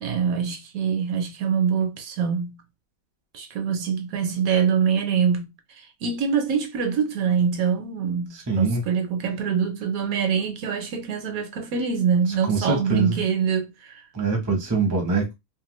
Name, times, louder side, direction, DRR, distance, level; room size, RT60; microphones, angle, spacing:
voice 1, 0.0-2.6 3.3-14.0, right 6 dB, 70° right, 0.9 m, -24 dB
voice 2, 8.3-8.8 12.5-13.2 14.1-15.3, right 4 dB, 20° right, 0.5 m, -24 dB
2.9 x 2.2 x 3.0 m
omnidirectional pair, 1.6 m